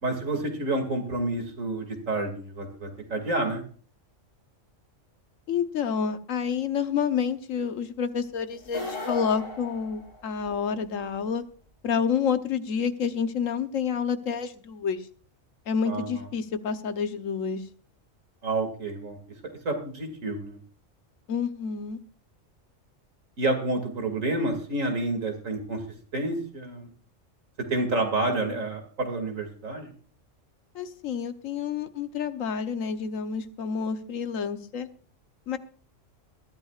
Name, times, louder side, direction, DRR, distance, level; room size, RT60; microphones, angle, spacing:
voice 1, 0.0-3.6 15.8-16.3 18.4-19.2 19.6-20.6 23.4-25.8 26.1-26.9 27.6-29.9, right 2 dB, 85° right, 5 dB, 2.9 m, -29 dB
voice 2, 5.5-11.4 11.8-15.1 15.7-17.6 21.3-22.0 30.7-34.9 35.5-35.6, left 6 dB, 85° left, 10 dB, 1.4 m, -29 dB
sound 1, 8.6-10.7, left 3 dB, 45° left, 3.1 m, -36 dB
21.0 x 13.5 x 2.4 m, 0.42 s
omnidirectional pair, 1.3 m